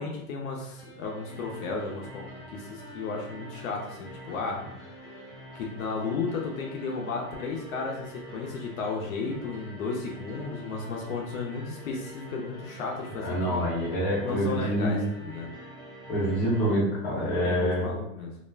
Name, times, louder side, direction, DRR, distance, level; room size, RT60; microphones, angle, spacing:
voice 1, 0.0-13.6 14.2-15.5 17.4-18.4, left 4 dB, 70° left, -1 dB, 0.6 m, -34 dB
sound 1, 0.8-16.8, equal, ahead, 0.6 m, -45 dB
voice 2, 13.2-15.1 16.1-17.8, equal, 25° left, -7 dB, 0.9 m, -26 dB
2.4 x 2.1 x 3.2 m, 0.83 s
supercardioid pair, 170°, 42 cm